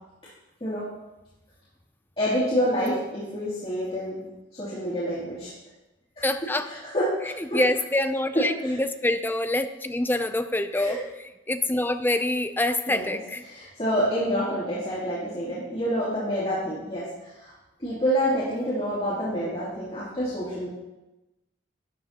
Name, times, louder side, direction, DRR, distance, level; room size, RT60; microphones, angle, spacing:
voice 1, 2.2-4.2 4.5-5.5 6.2-6.3 6.6-7.6 10.7-11.0 12.9-13.2 13.5-17.0 17.4-17.5 17.8-20.7, equal, 30° left, -10 dB, 2.8 m, -27 dB
voice 2, 6.2-6.7 7.2-13.4, left 1 dB, 10° left, 9 dB, 0.5 m, -26 dB
13.0 x 9.7 x 2.9 m, 1.0 s
head